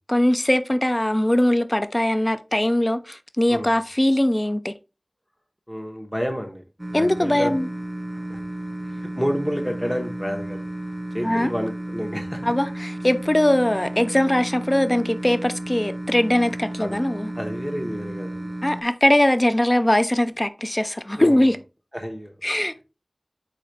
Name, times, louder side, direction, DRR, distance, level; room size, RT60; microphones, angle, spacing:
voice 1, 0.1-4.7 6.9-7.7 11.2-11.5 12.4-17.3 18.6-21.6 22.4-22.8, left 1 dB, 30° left, 0.5 m, -21 dB
voice 2, 5.7-6.6 6.9-7.5 8.1-8.4 8.8-10.7 11.1-12.4 16.8-17.0 17.4-18.5 21.2-21.5 21.9-22.3, equal, 5° left, 0.8 m, -30 dB
sound 1, 6.8-18.8, right 1 dB, 35° right, 0.5 m, -33 dB
3.9 x 3.8 x 3.2 m
wide cardioid pair, 45°, 0 cm